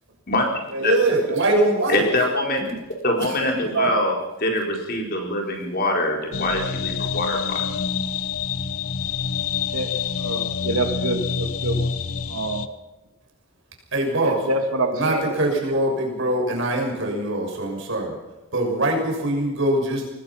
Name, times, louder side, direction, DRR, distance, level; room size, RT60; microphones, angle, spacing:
voice 1, 0.8-2.0 3.2-3.6 13.9-14.4 14.9-18.2 18.5-20.1, right 1 dB, 60° right, 1 dB, 6.5 m, -23 dB
voice 2, 1.9-2.8 3.0-7.6, left 1 dB, 45° left, 1 dB, 4.5 m, -24 dB
voice 3, 3.5-4.1 9.7-9.9 10.2-11.9 12.2-12.7 14.2-15.8, right 2 dB, 80° right, 5 dB, 2.4 m, -27 dB
sound 1, 6.3-12.7, left 6 dB, 80° left, 1.1 m, -27 dB
25.5 x 19.5 x 5.8 m, 1.1 s
head